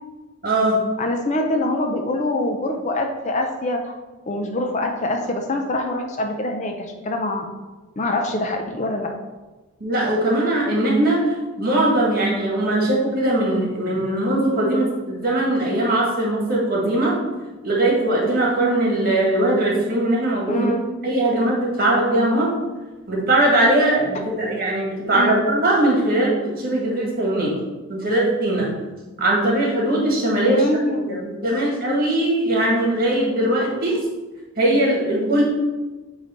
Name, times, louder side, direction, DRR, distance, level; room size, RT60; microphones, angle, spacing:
voice 1, 0.4-0.8 9.8-17.2 17.6-20.7 21.0-22.5 23.1-27.5 27.9-28.7 29.2-30.6 30.9-34.0 34.6-35.4, right 1 dB, 45° right, -3 dB, 1.7 m, -20 dB
voice 2, 1.0-3.9 4.3-7.5 8.0-9.1 20.5-20.8 25.1-25.4 30.4-31.2, left 1 dB, 35° left, 3 dB, 0.5 m, -24 dB
7.6 x 3.2 x 4.4 m, 1.2 s
head